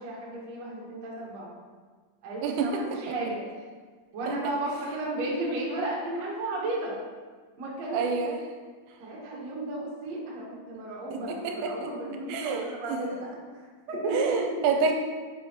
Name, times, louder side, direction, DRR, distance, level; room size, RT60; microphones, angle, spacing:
voice 1, 0.0-1.5 2.2-3.4 4.1-6.9 7.6-8.3 9.0-13.1 13.5-14.4, right 2 dB, 65° right, -5 dB, 1.6 m, -33 dB
voice 2, 2.4-2.8 4.3-4.4 7.9-8.4 11.1-11.9 12.3-12.6 12.9-13.0 14.1-14.9, right 5 dB, 85° right, 3 dB, 3.1 m, -28 dB
7.3 x 6.6 x 3.0 m, 1.5 s
omnidirectional pair, 5.8 m